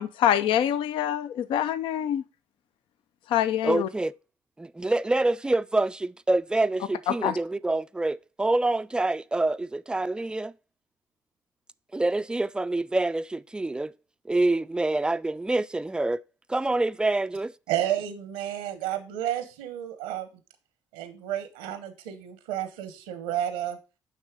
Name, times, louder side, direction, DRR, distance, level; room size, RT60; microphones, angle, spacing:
voice 1, 0.0-2.2 3.3-3.9 7.2-7.4, left 10 dB, 70° left, 0.4 m, -25 dB
voice 2, 3.6-4.1 4.6-10.5 11.9-13.9 14.3-16.2 16.5-17.5, right 2 dB, 10° right, 0.3 m, -26 dB
voice 3, 17.7-20.3 20.9-23.8, right 11 dB, 90° right, 0.9 m, -31 dB
8.5 x 3.3 x 4.9 m
hypercardioid pair, 60°, 9 cm